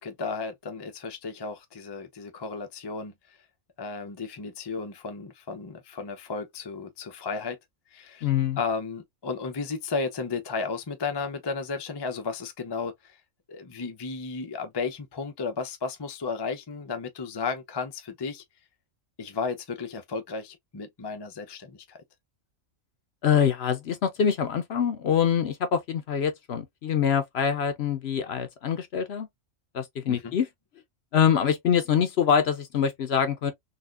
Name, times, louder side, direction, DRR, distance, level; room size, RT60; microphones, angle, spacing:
voice 1, 0.0-3.1 3.8-7.6 7.9-8.3 8.6-13.2 13.5-18.4 19.2-22.0 30.1-30.3, left 4 dB, 30° left, 0.4 m, -34 dB
voice 2, 8.2-8.6 23.2-29.3 29.7-30.5 31.1-33.5, left 8 dB, 60° left, 0.8 m, -24 dB
4.1 x 2.4 x 2.4 m
omnidirectional pair, 1.4 m